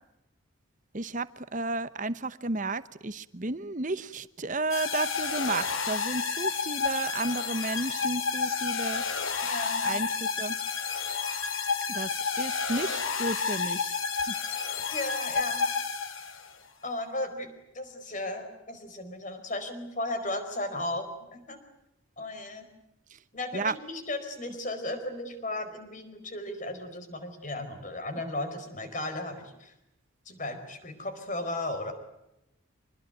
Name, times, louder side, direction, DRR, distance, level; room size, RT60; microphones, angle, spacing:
voice 1, 0.9-9.0 9.8-10.6 11.9-14.3 23.5-23.7, right 2 dB, 35° right, 14 dB, 1.0 m, -32 dB
sound 1, 4.7-16.5, left 5 dB, 75° left, 2.8 m, -30 dB
voice 2, 9.5-9.9 14.9-15.7 16.8-17.5 17.7-21.6 22.2-22.6 23.3-29.7 30.2-31.9, left 2 dB, 35° left, 8 dB, 4.7 m, -35 dB
25.5 x 21.0 x 9.2 m, 0.87 s
head